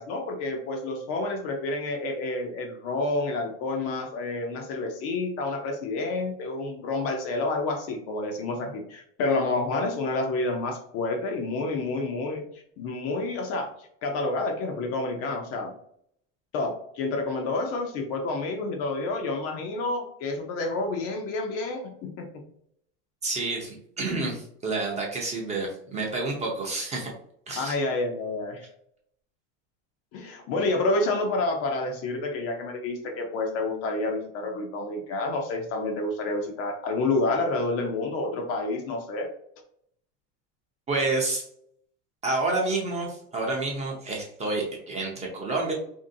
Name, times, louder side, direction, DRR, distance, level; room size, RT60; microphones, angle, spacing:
voice 1, 0.0-12.5 12.8-13.7 14.0-15.7 16.5-22.4 27.6-28.6 30.1-39.3, left 2 dB, 40° left, 3 dB, 0.5 m, -29 dB
voice 2, 23.2-27.1 27.5-27.8 40.9-41.4 42.2-45.7, right 3 dB, 20° right, -1 dB, 0.5 m, -29 dB
2.9 x 2.6 x 2.6 m, 0.67 s
supercardioid pair, 135°, 39 cm